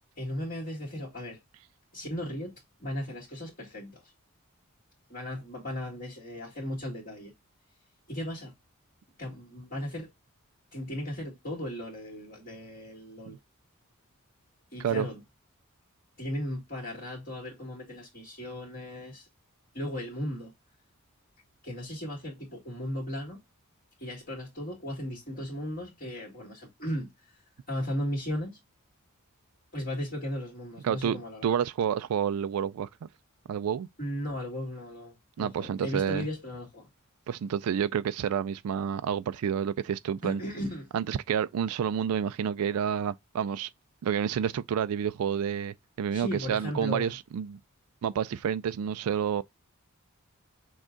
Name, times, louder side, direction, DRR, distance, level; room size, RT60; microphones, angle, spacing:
voice 1, 0.2-1.4 1.9-2.5 2.8-4.1 5.1-7.3 8.1-8.5 9.2-10.1 10.7-13.4 14.7-15.2 16.2-19.3 19.7-20.5 21.6-23.4 24.0-27.4 27.7-28.6 29.7-31.5 34.0-36.9 40.2-40.9 46.1-47.1, equal, 45° left, 2.0 m, -36 dB
voice 2, 30.8-31.2 31.4-33.1 33.5-33.9 35.4-36.3 37.3-40.4 40.9-43.7 44.0-47.6 48.0-49.4, right 8 dB, 80° right, 0.3 m, -29 dB
6.2 x 2.3 x 3.6 m
head